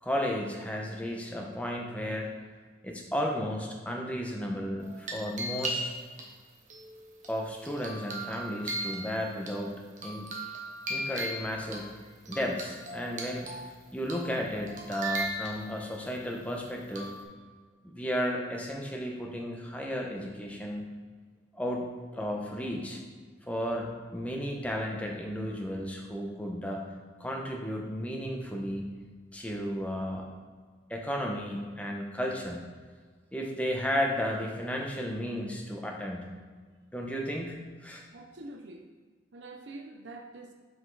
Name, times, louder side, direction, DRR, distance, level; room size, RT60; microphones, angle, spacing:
voice 1, 0.0-2.3 2.8-5.9 7.3-10.3 10.9-12.0 12.3-13.5 13.9-17.1 17.8-21.0 21.5-23.0 23.5-26.8 27.2-28.9 29.3-30.3 30.9-32.6 33.3-36.3 36.9-37.5 37.8-38.0, equal, 5° left, 0 dB, 0.8 m, -33 dB
sound 1, 4.8-6.2 6.7-9.5 10.0-11.8 12.3-13.7 14.1-14.4 14.7-16.0 17.0-17.2, right 1 dB, 40° right, 1.1 m, -37 dB
voice 2, 38.1-38.9 39.3-40.5, right 2 dB, 65° right, 2 dB, 0.6 m, -45 dB
6.1 x 5.1 x 4.0 m, 1.5 s
head